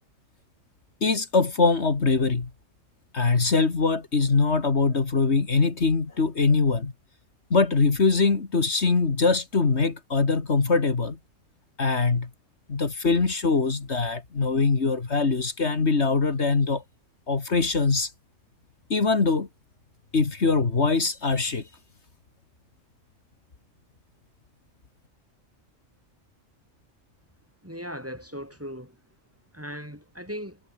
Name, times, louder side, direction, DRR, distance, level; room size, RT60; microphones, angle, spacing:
voice 1, 1.0-2.5 3.1-6.9 7.5-11.2 11.8-12.3 12.7-16.8 17.3-18.1 18.9-19.5 20.1-21.7, left 4 dB, 60° left, 2.4 m, -23 dB
voice 2, 27.6-29.0 29.5-30.6, equal, 10° right, 3.0 m, -38 dB
omnidirectional pair, 1.3 m